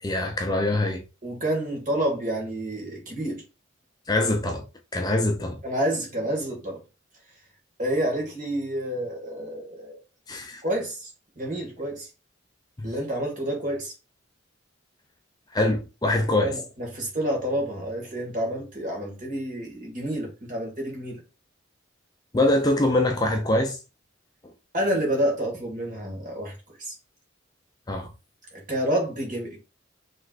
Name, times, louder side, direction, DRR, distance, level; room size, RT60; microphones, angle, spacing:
voice 1, 0.0-1.0 4.1-4.6 4.9-5.6 10.3-10.6 12.8-12.9 15.5-16.6 22.3-23.8 27.9-28.1, left 1 dB, 20° left, 0.5 m, -24 dB
voice 2, 1.2-3.4 5.6-6.8 7.8-10.0 10.6-11.1 11.4-12.1 12.8-13.9 16.4-21.2 24.7-26.9 28.5-29.6, right 1 dB, 40° right, 1.9 m, -29 dB
5.5 x 3.2 x 2.5 m
head